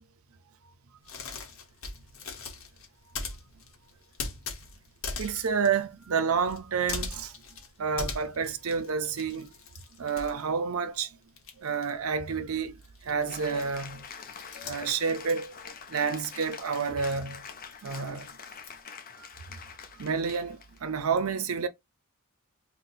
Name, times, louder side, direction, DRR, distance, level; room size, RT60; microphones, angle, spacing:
sound 1, 1.0-11.0 11.3-18.8, left 4 dB, 70° left, 0.8 m, -41 dB
voice 1, 5.2-7.3 7.8-9.5 10.0-11.2 11.6-14.1 14.6-15.5 15.9-17.4 17.8-18.3 19.2-19.6 20.0-21.7, right 5 dB, 80° right, 0.6 m, -29 dB
Cheering / Applause, 13.2-20.8, left 5 dB, 45° left, 0.5 m, -45 dB
2.7 x 2.2 x 4.0 m
head